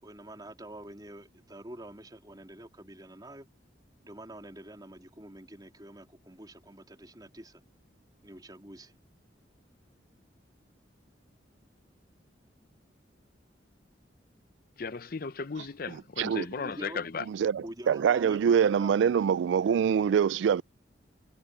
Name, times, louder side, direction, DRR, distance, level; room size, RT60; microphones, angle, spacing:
voice 1, 0.0-3.5 4.0-7.6 8.2-8.9 16.5-17.1 17.6-19.0, right 1 dB, 20° right, 3.5 m, -46 dB
voice 2, 14.8-17.3, left 5 dB, 50° left, 0.7 m, -36 dB
voice 3, 15.9-16.5 17.3-20.6, right 7 dB, 80° right, 0.3 m, -25 dB
head